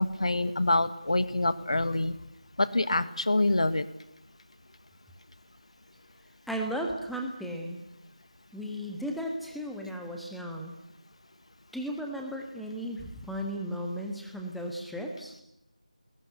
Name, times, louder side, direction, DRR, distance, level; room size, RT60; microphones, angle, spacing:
voice 1, 0.0-2.1 2.6-3.8, left 2 dB, 55° left, 13 dB, 1.5 m, -26 dB
voice 2, 6.5-7.8 8.5-10.7 11.7-15.3, equal, ahead, 1 dB, 1.4 m, -35 dB
30.0 x 21.0 x 6.8 m, 0.80 s
figure-of-eight pair, 165°, 4 cm